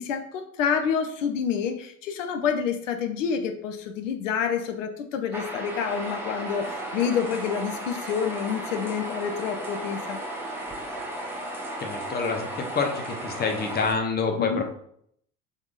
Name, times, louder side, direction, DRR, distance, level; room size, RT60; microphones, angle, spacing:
voice 1, 0.0-10.2 14.3-14.6, left 7 dB, 70° left, 5 dB, 0.6 m, -28 dB
sound 1, 5.3-13.9, right 1 dB, 5° right, 1.0 m, -35 dB
voice 2, 11.8-14.6, left 4 dB, 25° left, 3 dB, 0.8 m, -27 dB
5.1 x 3.5 x 2.4 m, 0.67 s
figure-of-eight pair, 65°, 40 cm